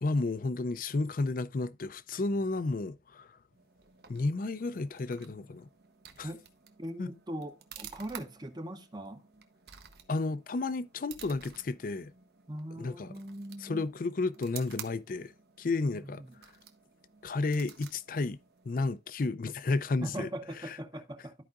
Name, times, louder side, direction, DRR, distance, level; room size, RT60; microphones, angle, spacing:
voice 1, 0.0-3.3 4.1-5.7 6.2-6.3 7.0-7.1 10.1-12.1 12.8-13.1 13.6-15.3 15.6-16.2 17.2-18.4 18.6-20.3 20.7-20.8, left 3 dB, 50° left, 0.4 m, -32 dB
sound 1, 3.5-19.1, right 8 dB, 60° right, 0.9 m, -52 dB
voice 2, 6.8-9.2 12.5-13.9 15.9-16.3 20.0-21.3, right 1 dB, 25° right, 0.7 m, -40 dB
13.0 x 4.8 x 2.4 m
head